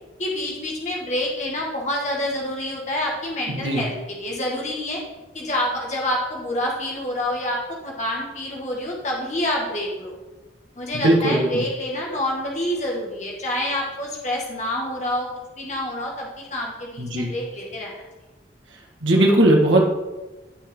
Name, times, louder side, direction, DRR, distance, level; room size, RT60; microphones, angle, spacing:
voice 1, 0.2-3.9 4.2-5.0 5.3-10.2 10.8-15.3 15.6-17.9, left 1 dB, 40° left, -2 dB, 1.8 m, -27 dB
voice 2, 3.5-3.8 10.9-11.6 17.0-17.3 19.0-19.9, right 1 dB, 85° right, -1 dB, 1.7 m, -18 dB
16.5 x 6.0 x 3.8 m, 1.1 s
head